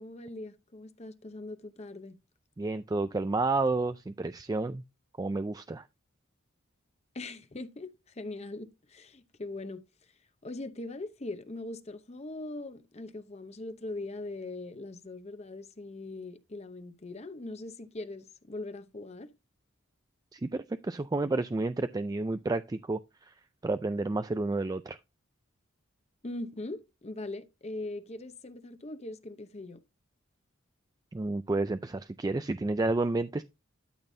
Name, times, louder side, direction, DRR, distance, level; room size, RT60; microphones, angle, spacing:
voice 1, 0.0-2.2 7.1-9.8 10.4-19.3 26.2-29.8, left 2 dB, 30° left, 0.8 m, -41 dB
voice 2, 2.6-4.8 5.2-5.9 20.3-23.3 23.6-25.0 31.1-33.4, right 2 dB, 20° right, 0.3 m, -30 dB
12.5 x 5.9 x 2.7 m
head